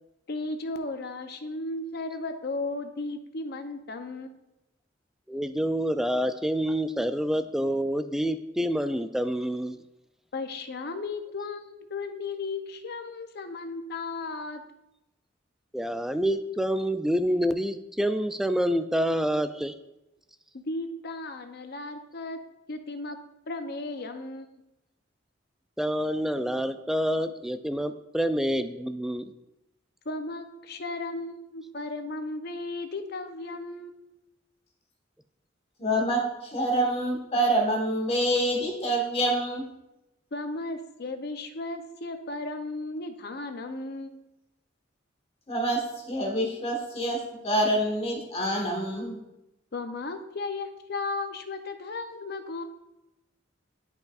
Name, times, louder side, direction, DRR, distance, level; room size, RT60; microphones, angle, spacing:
voice 1, 0.3-4.4 10.3-14.6 20.5-22.4 22.7-23.2 23.5-24.5 27.7-27.8 30.1-34.0 40.3-44.2 49.7-52.6, left 3 dB, 55° left, 7 dB, 0.7 m, -35 dB
voice 2, 5.3-9.8 15.7-19.7 25.8-29.3, equal, ahead, 9 dB, 0.3 m, -27 dB
voice 3, 35.8-39.7 45.5-49.2, right 1 dB, 30° left, 0 dB, 1.5 m, -26 dB
10.5 x 5.3 x 2.4 m, 0.92 s
head